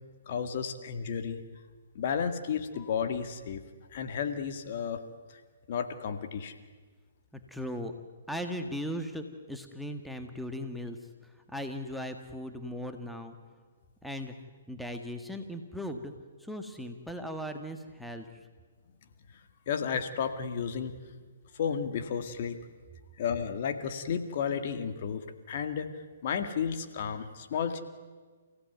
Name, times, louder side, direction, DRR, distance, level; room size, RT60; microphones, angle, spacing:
voice 1, 0.3-1.4 1.9-3.6 3.9-5.0 5.7-6.5 19.7-21.0 21.6-22.6 23.2-25.9 26.2-27.8, left 7 dB, 50° left, 8 dB, 2.1 m, -32 dB
voice 2, 7.5-7.9 8.3-11.0 11.2-13.4 14.0-14.3 14.7-16.1 16.4-18.5, equal, ahead, 5 dB, 1.6 m, -38 dB
29.5 x 16.0 x 9.3 m, 1.5 s
hypercardioid pair, 140°, 0 cm